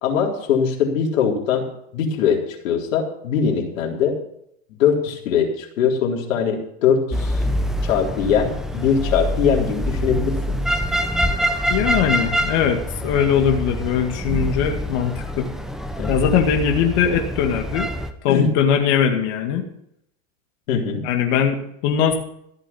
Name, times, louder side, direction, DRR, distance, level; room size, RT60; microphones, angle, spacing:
voice 1, 0.0-1.7 1.9-2.4 2.6-4.2 4.8-7.4 7.8-10.6 16.0-16.3 18.3-18.5 20.7-21.0, left 7 dB, 75° left, -1 dB, 4.0 m, -21 dB
sound 1, 7.1-18.1, equal, ahead, 1.1 m, -25 dB
voice 2, 11.7-15.5 16.1-17.9 18.2-19.6 21.0-21.6 21.8-22.1, left 8 dB, 55° left, 2 dB, 2.2 m, -20 dB
14.5 x 8.2 x 7.1 m, 0.72 s
hypercardioid pair, 120°, 40 cm